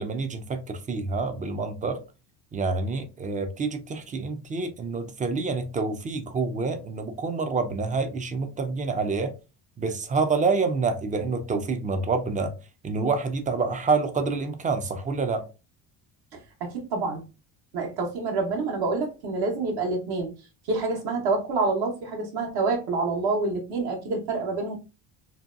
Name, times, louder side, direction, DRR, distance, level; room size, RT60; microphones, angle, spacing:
voice 1, 0.0-2.0 2.5-9.3 9.8-12.5 12.8-15.5, right 4 dB, 20° right, 0.3 m, -27 dB
voice 2, 16.3-17.2 17.7-20.3 20.7-24.8, right 3 dB, 70° right, 1.1 m, -27 dB
2.7 x 2.2 x 2.4 m
cardioid pair, 100°, 40 cm